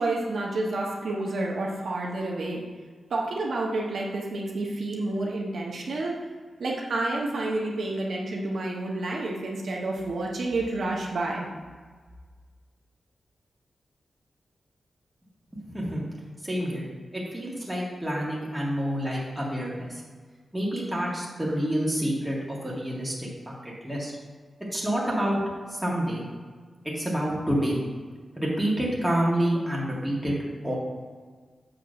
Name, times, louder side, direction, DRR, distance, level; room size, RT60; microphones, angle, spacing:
voice 1, 0.0-2.6 3.1-6.1 6.6-11.5, right 2 dB, 70° right, -2 dB, 1.2 m, -29 dB
voice 2, 15.5-16.0 16.4-16.8 17.1-20.0 20.5-24.2 24.7-25.4 25.7-26.3 26.9-27.8 28.4-30.4 30.6-30.7, equal, 10° right, -5 dB, 1.9 m, -28 dB
7.6 x 3.6 x 6.5 m, 1.5 s
wide cardioid pair, 135°, 0 cm